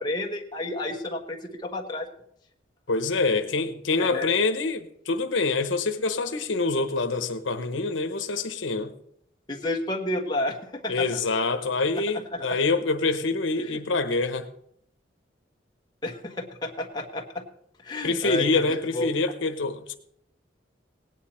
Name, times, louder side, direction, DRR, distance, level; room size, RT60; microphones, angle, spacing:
voice 1, 0.0-2.1 4.0-4.3 9.5-11.2 12.1-12.5 13.6-13.8 16.0-17.4 17.8-19.1, left 2 dB, 20° left, 1.3 m, -31 dB
voice 2, 2.9-8.9 10.9-14.5 18.0-19.9, left 3 dB, 85° left, 1.0 m, -26 dB
18.0 x 9.6 x 4.3 m
head